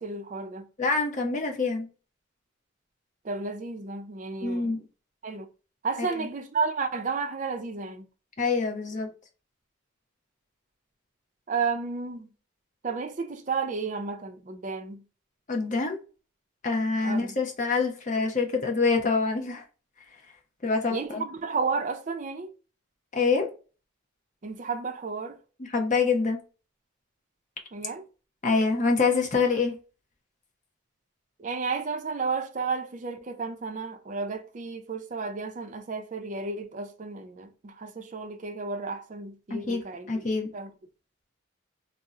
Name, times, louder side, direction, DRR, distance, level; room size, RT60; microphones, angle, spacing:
voice 1, 0.0-0.7 3.2-4.7 5.2-5.5 5.8-8.0 11.5-12.3 12.8-15.0 17.0-17.3 20.9-22.5 24.4-25.4 27.7-28.0 31.4-40.3 40.5-40.7, right 4 dB, 40° right, 0.4 m, -32 dB
voice 2, 0.8-1.9 4.4-4.8 6.0-6.3 8.4-9.1 15.5-16.0 16.6-19.6 20.6-21.2 23.1-23.5 25.6-26.4 28.4-29.8 39.5-39.8 40.1-40.5, left 4 dB, 35° left, 0.7 m, -26 dB
2.7 x 2.0 x 3.5 m
head